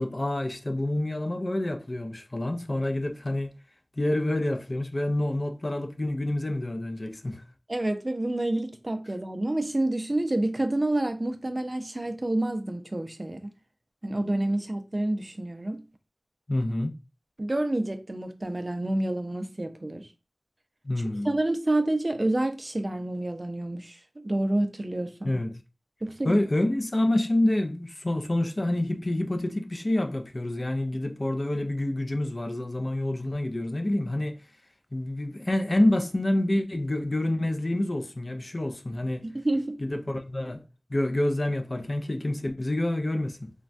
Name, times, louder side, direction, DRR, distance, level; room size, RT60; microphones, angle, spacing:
voice 1, 0.0-3.5 4.0-7.4 16.5-16.9 20.8-21.4 25.2-25.5 26.2-34.4 34.9-39.3 39.8-40.6 40.9-43.5, left 1 dB, 45° left, 0.4 m, -27 dB
voice 2, 7.7-13.5 14.0-15.8 17.4-20.0 21.2-25.4 26.0-26.3 39.2-39.8, right 1 dB, 40° right, 0.4 m, -28 dB
3.2 x 2.2 x 2.4 m
wide cardioid pair, 45°, 0 cm